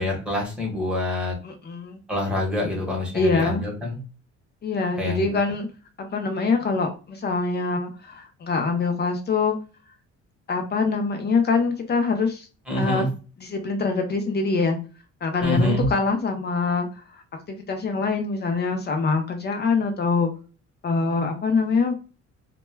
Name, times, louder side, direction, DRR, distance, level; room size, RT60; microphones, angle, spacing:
voice 1, 0.0-1.4 2.1-4.0 5.0-5.4 12.7-13.1 15.4-15.9, left 1 dB, 5° right, -2 dB, 0.9 m, -26 dB
voice 2, 1.4-2.0 3.1-3.7 4.6-5.7 6.0-9.5 10.5-12.5 12.7-13.1 13.4-14.8 15.2-17.2 17.5-20.3 20.8-21.9, left 4 dB, 35° left, 5 dB, 0.4 m, -24 dB
2.2 x 2.1 x 3.1 m, 0.34 s
cardioid pair, 160°, 29 cm